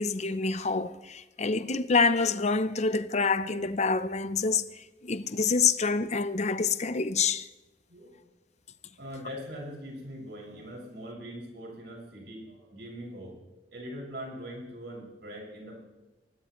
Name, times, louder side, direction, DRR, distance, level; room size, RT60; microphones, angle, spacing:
voice 1, 0.0-7.5, left 4 dB, 40° left, 0.7 m, -27 dB
voice 2, 9.0-13.3 13.7-15.8, equal, 80° right, 6.1 m, -42 dB
24.0 x 18.5 x 3.1 m
head